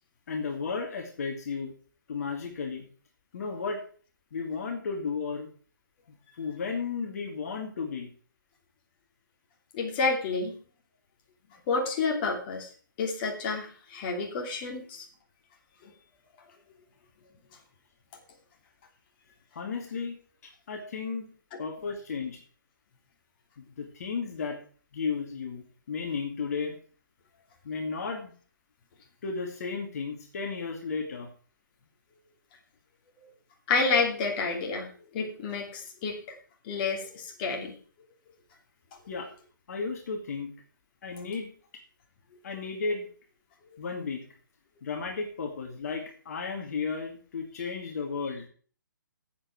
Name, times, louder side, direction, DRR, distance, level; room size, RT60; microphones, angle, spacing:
voice 1, 0.3-1.7 2.1-2.9 3.3-3.8 4.3-5.5 6.1-8.1 19.6-20.2 20.4-21.3 21.6-22.4 23.6-24.6 24.9-26.8 27.6-28.3 29.2-31.3 39.1-39.3 39.7-40.5 41.0-41.5 42.4-43.1 43.8-44.3 44.8-48.4, left 5 dB, 50° left, 2 dB, 2.5 m, -34 dB
voice 2, 9.7-10.5 11.7-12.7 13.0-15.1 33.7-36.2 36.6-37.7, left 4 dB, 30° left, 0 dB, 2.8 m, -29 dB
14.5 x 8.0 x 4.7 m, 0.43 s
figure-of-eight pair, 135°, 11 cm